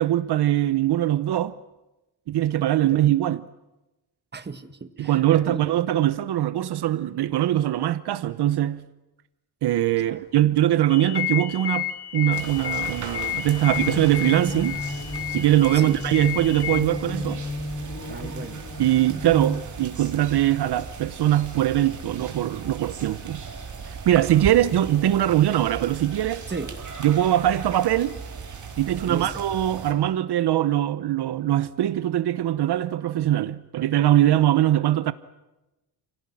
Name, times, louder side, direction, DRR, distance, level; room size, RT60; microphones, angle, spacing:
voice 1, 0.0-1.6 2.3-3.4 5.0-8.8 9.6-14.8 15.3-17.4 18.8-23.4 24.0-26.5 27.0-28.2 28.8-35.1, right 13 dB, 75° right, 0.9 m, -22 dB
voice 2, 4.3-5.6 10.0-10.2 15.7-16.0 18.1-18.6 26.5-26.7 29.0-29.4, right 4 dB, 25° right, 1.6 m, -35 dB
sound 1, 10.9-16.8, left 14 dB, 75° left, 2.3 m, -31 dB
sound 2, 12.3-29.9, right 5 dB, 50° right, 4.0 m, -38 dB
sound 3, 13.7-19.6, left 2 dB, 35° left, 3.7 m, -33 dB
29.0 x 17.5 x 9.9 m
cardioid pair, 130°, 40 cm